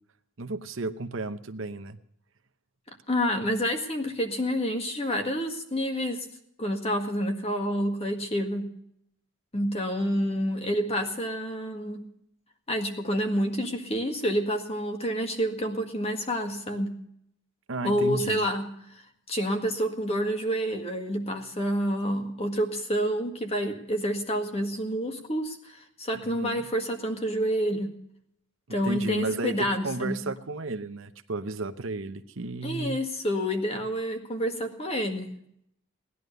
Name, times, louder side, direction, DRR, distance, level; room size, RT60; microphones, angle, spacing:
voice 1, 0.4-2.0 17.7-18.5 26.1-26.6 28.8-33.0, right 2 dB, 55° right, 9 dB, 0.9 m, -33 dB
voice 2, 3.1-6.3 6.6-8.7 9.5-12.0 12.7-16.9 17.8-18.7 18.9-27.9 28.7-30.2 32.6-35.3, equal, 25° left, 5 dB, 1.8 m, -28 dB
18.5 x 11.0 x 6.6 m, 0.73 s
head